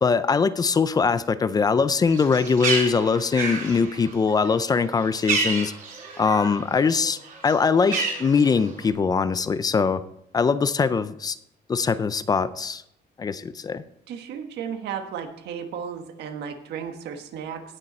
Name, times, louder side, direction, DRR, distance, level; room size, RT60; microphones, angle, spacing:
voice 1, 0.0-5.7 6.2-10.0 10.3-11.4 11.7-12.8 13.2-13.8, left 5 dB, 20° left, 14 dB, 0.4 m, -22 dB
Bird, 2.0-6.6 7.0-8.9, right 4 dB, 50° right, 3.6 m, -30 dB
voice 2, 14.1-17.6, right 7 dB, 70° right, 6 dB, 1.5 m, -34 dB
18.0 x 6.6 x 4.3 m, 0.75 s
cardioid pair, 160°, 18 cm